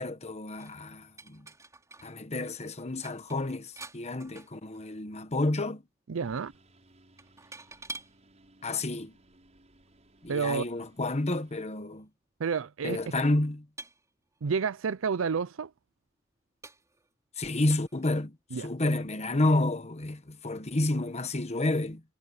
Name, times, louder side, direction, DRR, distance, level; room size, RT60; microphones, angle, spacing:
voice 1, 0.0-1.5 2.0-5.8 8.6-9.1 10.2-12.1 12.8-13.7 17.4-22.0, left 2 dB, 35° left, 1.3 m, -30 dB
sound 1, 0.6-2.2 2.4-2.5 2.8-5.0 5.3-5.6 7.2-8.2 9.0-9.1 11.6-11.7 11.9-12.0 12.8-13.0 13.8-14.7 15.3-15.4 16.0-16.1 16.6-17.1 17.7-18.2, right 3 dB, 15° right, 4.8 m, -48 dB
voice 2, 6.1-6.5 10.3-10.6 12.4-13.0 14.4-15.7 18.5-18.7, right 5 dB, 75° right, 0.5 m, -30 dB
Engine, 6.2-11.7, right 1 dB, 35° right, 6.8 m, -61 dB
head